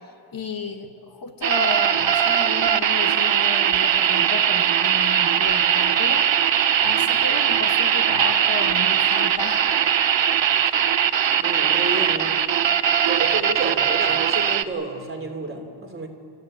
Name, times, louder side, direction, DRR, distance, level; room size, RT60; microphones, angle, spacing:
voice 1, 0.3-6.3 6.8-9.6, left 4 dB, 45° left, 6 dB, 1.4 m, -33 dB
sound 1, 1.4-14.6, right 9 dB, 65° right, 0.9 m, -20 dB
voice 2, 11.4-12.4 13.1-16.1, right 2 dB, 25° right, 2 dB, 3.2 m, -30 dB
30.0 x 14.5 x 8.9 m, 2.6 s
wide cardioid pair, 130°, 48 cm